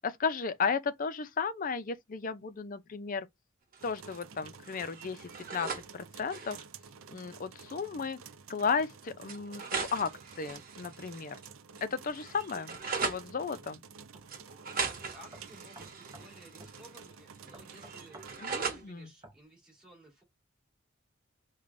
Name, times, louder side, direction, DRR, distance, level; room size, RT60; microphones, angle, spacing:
voice 1, 0.0-3.3 3.8-6.6 7.1-8.2 8.5-11.4 11.8-13.8 18.4-19.1, left 5 dB, 40° left, 0.5 m, -34 dB
sound 1, 3.7-4.4 4.6-5.9 6.2-6.6 7.7-7.8 8.2-8.3 9.3-11.5 11.8-13.3 14.3-17.1 17.4-18.8, right 5 dB, 45° right, 0.9 m, -39 dB
sound 2, 3.8-18.4, right 6 dB, 85° right, 0.5 m, -51 dB
sound 3, 14.1-14.3 14.8-14.9 15.3-16.3 16.6-16.8 17.5-18.7 19.2-19.4, right 1 dB, 20° right, 0.7 m, -52 dB
voice 2, 14.7-18.2 18.5-20.2, right 1 dB, 5° right, 2.1 m, -56 dB
4.8 x 2.3 x 2.5 m
head